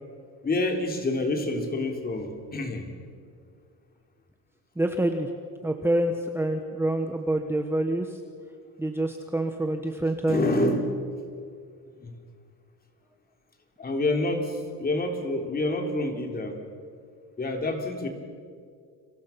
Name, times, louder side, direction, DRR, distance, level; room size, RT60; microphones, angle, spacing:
voice 1, 0.4-2.9 10.3-11.0 12.0-12.1 13.8-16.6 17.4-18.1, left 2 dB, 25° left, 3 dB, 3.5 m, -27 dB
voice 2, 4.8-5.3 5.6-8.2 8.8-10.4, right 1 dB, 5° right, 4 dB, 1.3 m, -26 dB
30.0 x 24.5 x 5.9 m, 2.2 s
cardioid pair, 140°, 33 cm